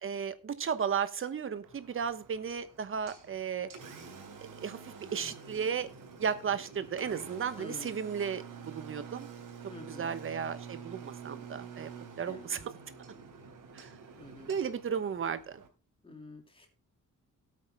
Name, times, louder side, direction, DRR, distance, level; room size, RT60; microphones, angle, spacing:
voice 1, 0.0-3.7 4.6-4.8 5.1-5.9 6.2-9.3 9.9-11.9 12.1-12.7 13.7-13.9 14.5-15.6, right 7 dB, 40° right, 12 dB, 1.1 m, -34 dB
Engine, 1.6-15.7, right 6 dB, 90° right, 3.2 m, -48 dB
voice 2, 7.6-8.0 9.7-10.2 12.3-12.5 14.2-14.6 16.0-16.7, left 2 dB, 15° left, 3 dB, 3.1 m, -48 dB
18.0 x 8.6 x 2.2 m, 0.32 s
wide cardioid pair, 170°, 31 cm